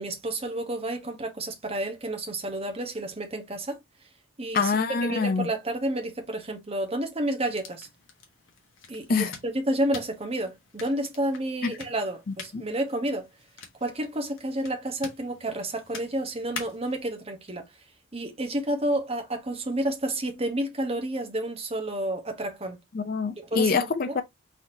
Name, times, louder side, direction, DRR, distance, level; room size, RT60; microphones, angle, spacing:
voice 1, 0.0-3.8 4.4-7.9 8.9-13.3 13.8-17.6 18.1-22.8 23.4-24.2, right 1 dB, 25° right, 0.9 m, -30 dB
voice 2, 4.5-5.5 9.1-9.3 11.6-11.7 12.5-12.6 22.9-24.2, left 5 dB, 40° left, 0.4 m, -25 dB
sound 1, 7.4-17.0, left 5 dB, 60° left, 1.2 m, -46 dB
4.1 x 4.0 x 2.6 m
head